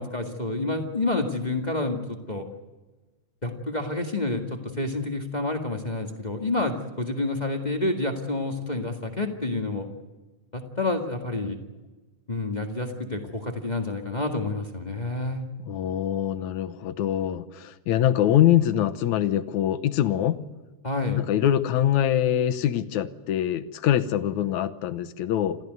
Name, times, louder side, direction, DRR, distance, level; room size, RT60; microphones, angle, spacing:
voice 1, 0.0-2.5 3.4-9.9 10.5-11.6 12.3-15.4 20.8-21.2, left 2 dB, 20° left, 4 dB, 1.4 m, -29 dB
voice 2, 15.6-20.4 21.2-25.6, left 11 dB, 80° left, 12 dB, 2.3 m, -24 dB
27.5 x 15.0 x 9.4 m, 1.2 s
omnidirectional pair, 3.4 m